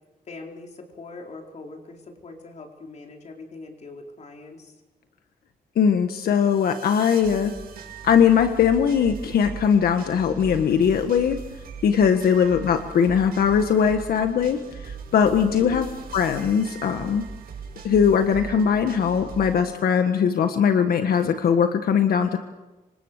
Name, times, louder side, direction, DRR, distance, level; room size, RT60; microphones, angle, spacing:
voice 1, 0.3-4.8 12.3-12.6 15.6-16.0, left 3 dB, 50° left, 2 dB, 4.6 m, -42 dB
voice 2, 5.7-7.5 8.0-11.4 11.8-15.9 16.1-17.2 17.8-22.4, left 7 dB, 85° left, 6 dB, 1.5 m, -20 dB
sound 1, 6.3-19.6, right 6 dB, 75° right, 6.4 m, -39 dB
28.0 x 25.0 x 6.7 m, 1.1 s
wide cardioid pair, 165°, 15 cm